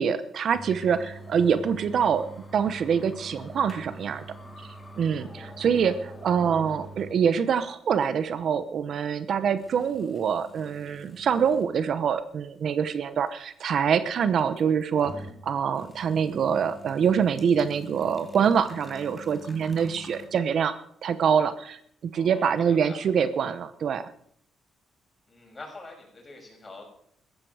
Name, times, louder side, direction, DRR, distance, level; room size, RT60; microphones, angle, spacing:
voice 1, 0.0-2.3 2.5-4.2 5.0-20.8 21.0-24.0, right 7 dB, 60° right, 13 dB, 0.9 m, -25 dB
sound 1, 0.5-7.2 7.6-7.7 8.4-8.5 9.6-11.7 12.2-12.3 14.4-15.4 15.7-20.3, equal, 10° left, 2.8 m, -45 dB
voice 2, 22.1-23.0 25.3-26.8, left 2 dB, 25° left, 0 dB, 6.9 m, -45 dB
15.5 x 12.5 x 4.9 m, 0.67 s
cardioid pair, 90°, 0 cm